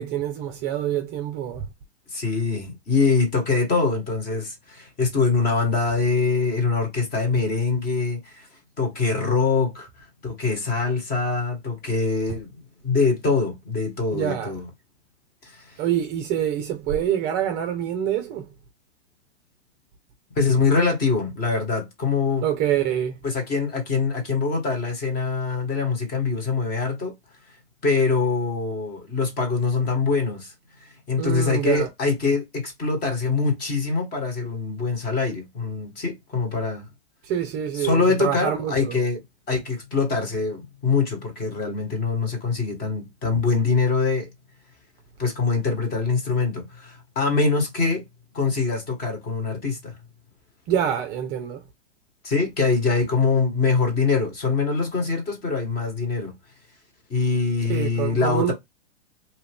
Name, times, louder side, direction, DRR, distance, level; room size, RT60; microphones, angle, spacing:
voice 1, 0.0-1.7 14.1-14.5 15.8-18.5 22.4-23.2 31.2-31.9 37.2-39.0 50.7-51.6 57.7-58.5, right 10 dB, 30° right, 0.5 m, -26 dB
voice 2, 2.1-8.5 8.8-12.5 12.8-14.7 15.4-15.8 20.3-22.4 23.2-27.1 27.8-30.5 30.8-36.9 37.7-39.2 39.5-44.3 45.2-48.0 48.3-50.0 52.2-56.3 57.1-58.5, left 4 dB, 25° left, 1.4 m, -24 dB
2.7 x 2.4 x 3.5 m
hypercardioid pair, 115°, 35 cm